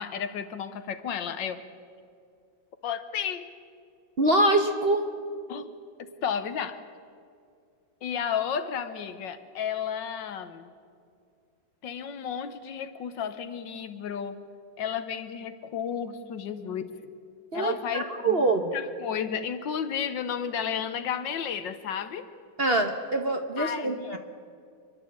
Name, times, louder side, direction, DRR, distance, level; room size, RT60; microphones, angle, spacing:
voice 1, 0.0-1.6 2.8-3.5 5.5-5.7 6.2-6.8 8.0-10.7 11.8-14.4 14.8-17.0 17.5-18.5 18.7-22.3 23.6-24.2, left 8 dB, 70° left, 10 dB, 1.6 m, -32 dB
voice 2, 4.2-5.0 17.5-18.7 22.6-24.2, right 2 dB, 40° right, 5 dB, 1.0 m, -24 dB
28.0 x 11.5 x 8.5 m, 2.3 s
omnidirectional pair, 2.1 m